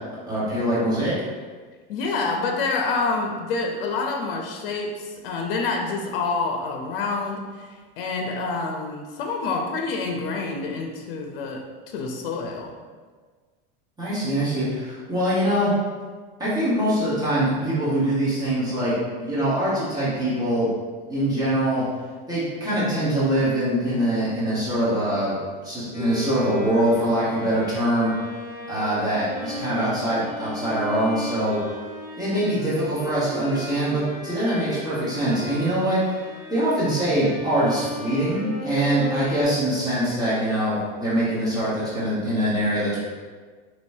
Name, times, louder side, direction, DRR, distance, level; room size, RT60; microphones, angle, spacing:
voice 1, 0.3-1.1 14.0-15.7 16.4-18.9 19.2-20.7 21.1-21.8 22.3-25.3 25.6-28.1 28.7-31.6 32.2-43.0, right 1 dB, 15° right, -10 dB, 1.3 m, -23 dB
voice 2, 1.9-12.7, left 3 dB, 65° left, 2 dB, 0.7 m, -27 dB
Bowed string instrument, 25.9-39.4, left 1 dB, 25° left, 1.2 m, -36 dB
5.1 x 3.1 x 2.7 m, 1.5 s
supercardioid pair, 140°, 29 cm